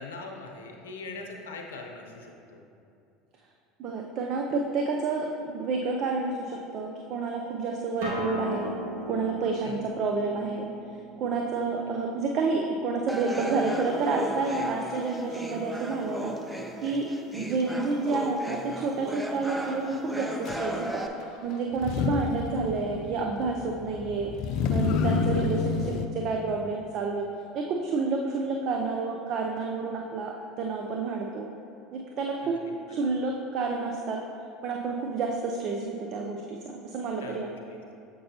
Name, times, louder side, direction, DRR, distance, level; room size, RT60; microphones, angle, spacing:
voice 1, 0.0-2.6 9.6-9.8 17.3-17.5 21.8-22.2 32.4-33.0 37.2-37.8, left 3 dB, 85° left, 2 dB, 0.7 m, -42 dB
voice 2, 3.8-8.7 9.1-10.7 11.2-16.3 16.8-21.0 21.4-24.3 24.7-27.3 27.5-31.5 31.9-32.6 32.9-34.2 34.6-37.5, right 4 dB, 50° right, 1 dB, 0.5 m, -29 dB
Acoustic guitar, 8.0-13.2, left 1 dB, 80° right, 1.3 m, -39 dB
sound 1, 13.1-21.1, equal, 5° right, 0.5 m, -35 dB
Motor vehicle (road), 20.5-20.6 21.7-26.1, left 6 dB, 55° left, 0.3 m, -29 dB
7.6 x 5.4 x 2.8 m, 2.6 s
hypercardioid pair, 80°, 0 cm